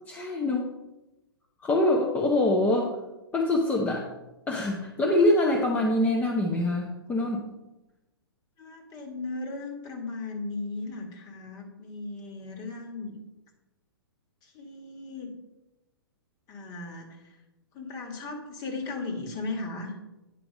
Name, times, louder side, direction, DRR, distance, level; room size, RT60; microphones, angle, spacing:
voice 1, 0.1-0.6 1.6-2.9 3.3-4.1 4.5-7.5, left 1 dB, 15° left, -1 dB, 0.8 m, -24 dB
voice 2, 8.6-13.2 14.4-15.3 16.5-17.4 17.7-19.9, left 3 dB, 30° left, 4 dB, 1.7 m, -37 dB
9.0 x 4.6 x 5.2 m, 1.0 s
figure-of-eight pair, 115°, 13 cm